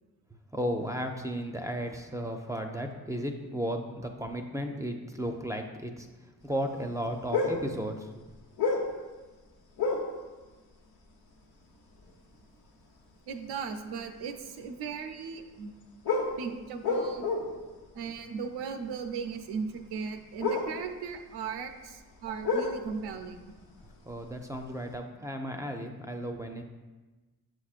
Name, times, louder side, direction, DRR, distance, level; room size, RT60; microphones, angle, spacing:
voice 1, 0.5-6.1 6.4-8.1 24.1-26.6, equal, 10° right, 3 dB, 0.5 m, -34 dB
sound 1, 7.3-7.7 8.3-9.0 9.8-10.2 11.3-11.4 11.9-12.1 13.9-14.0 16.0-17.7 18.0-18.1 20.3-21.7 22.0-24.3 24.5-24.8, left 3 dB, 85° left, 1.0 m, -30 dB
voice 2, 13.3-15.7 16.4-17.3 17.9-23.4, right 5 dB, 90° right, 6 dB, 0.6 m, -37 dB
6.5 x 6.1 x 2.4 m, 1.2 s
cardioid pair, 75°, 38 cm